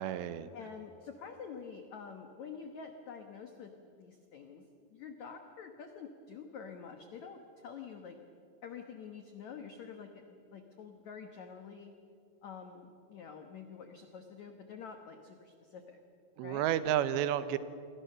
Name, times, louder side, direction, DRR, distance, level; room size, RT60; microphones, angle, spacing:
voice 1, 0.0-0.5 16.4-17.6, right 11 dB, 80° right, 13 dB, 3.0 m, -31 dB
voice 2, 0.5-4.6 4.9-8.2 8.6-11.9 12.4-16.0 16.4-16.6, left 6 dB, 85° left, 5 dB, 1.6 m, -47 dB
28.0 x 21.5 x 6.8 m, 2.5 s
omnidirectional pair, 5.2 m